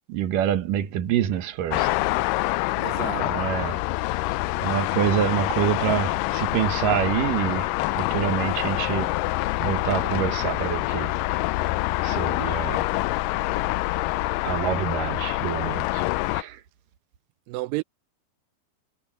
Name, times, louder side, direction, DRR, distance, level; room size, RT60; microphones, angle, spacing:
voice 1, 0.1-1.9 2.3-2.4 3.1-3.8 4.6-9.2 9.6-11.2 12.0-12.9 14.4-16.6, right 10 dB, 65° right, 2.7 m, -27 dB
sound 1, 1.7-16.4, left 19 dB, 90° left, 1.9 m, -26 dB
voice 2, 2.8-3.5 17.5-17.8, right 21 dB, 85° right, 2.0 m, -32 dB
omnidirectional pair, 4.4 m